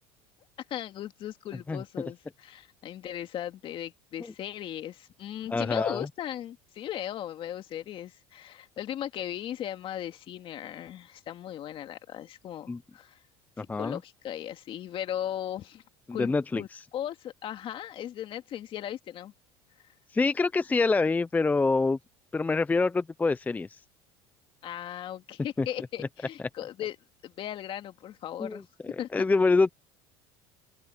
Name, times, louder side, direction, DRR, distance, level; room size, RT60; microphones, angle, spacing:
voice 1, 0.7-13.2 13.7-15.8 16.1-19.3 24.6-27.0 27.2-28.7 29.0-29.1, left 11 dB, 45° left, 2.3 m, -37 dB
voice 2, 5.5-6.1 12.7-12.8 13.6-14.0 16.2-16.6 20.1-22.0 22.3-23.8 25.6-25.7 28.4-28.6 29.1-29.7, left 3 dB, 15° left, 0.6 m, -25 dB
open air
supercardioid pair, 115°, 12 cm